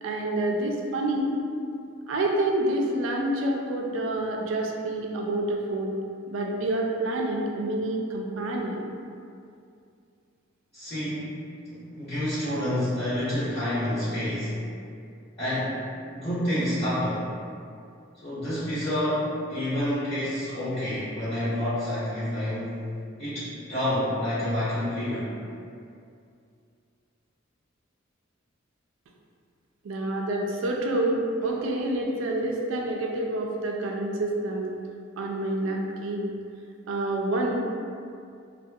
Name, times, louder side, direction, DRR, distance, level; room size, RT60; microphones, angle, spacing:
voice 1, 0.0-1.3 2.1-5.9 6.3-8.8 29.8-34.7 35.2-36.3 36.9-37.6, right 1 dB, 85° right, 0 dB, 0.4 m, -28 dB
voice 2, 10.7-11.3 11.7-14.6 15.4-15.8 16.1-17.3 18.2-22.8 23.2-25.3, left 1 dB, 30° left, -19 dB, 0.9 m, -28 dB
2.6 x 2.1 x 2.3 m, 2.4 s
head